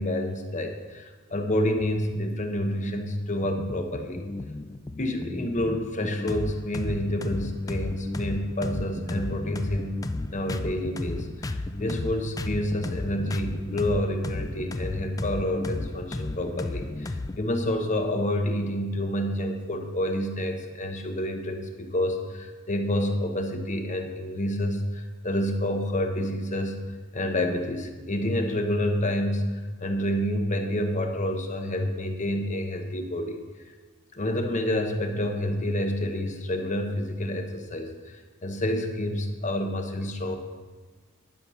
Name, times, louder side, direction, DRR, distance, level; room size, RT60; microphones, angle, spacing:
voice 1, 0.0-4.3 5.0-10.0 10.3-26.8 27.1-33.4 34.1-40.4, left 1 dB, 35° left, 5 dB, 1.0 m, -28 dB
sound 1, 3.4-17.4, left 2 dB, 15° left, 0.3 m, -33 dB
11.0 x 7.1 x 5.6 m, 1.4 s
head